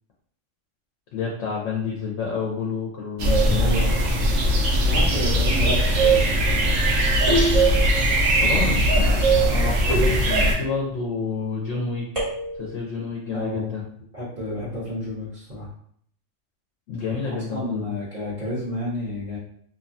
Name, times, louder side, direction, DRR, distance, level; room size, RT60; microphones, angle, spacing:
voice 1, 1.1-3.6 8.2-12.1 12.6-13.8 16.9-17.9, left 5 dB, 75° left, -3 dB, 1.0 m, -29 dB
sound 1, 3.2-10.6, right 1 dB, 85° right, 1.0 m, -20 dB
voice 2, 3.5-4.4 4.7-6.9 8.4-9.3 13.3-13.7 14.1-15.7 17.1-19.4, left 1 dB, 45° right, -12 dB, 1.2 m, -31 dB
sound 2, 7.3-8.2 9.9-10.8 12.1-12.9, equal, 25° right, 1.3 m, -27 dB
2.8 x 2.2 x 2.6 m, 0.63 s
omnidirectional pair, 1.3 m